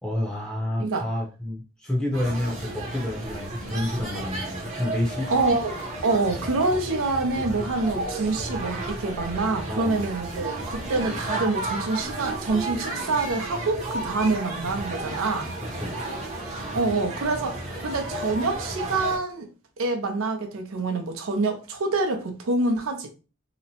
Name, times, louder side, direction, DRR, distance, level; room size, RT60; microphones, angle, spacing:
voice 1, 0.0-5.3 9.7-10.1 15.7-15.9, left 1 dB, 5° left, 0.6 m, -29 dB
sound 1, 2.1-19.2, right 2 dB, 35° right, 0.7 m, -33 dB
voice 2, 5.3-15.5 16.7-17.6 17.8-19.5 19.8-23.1, right 3 dB, 85° right, 0.6 m, -26 dB
2.9 x 2.1 x 2.7 m
head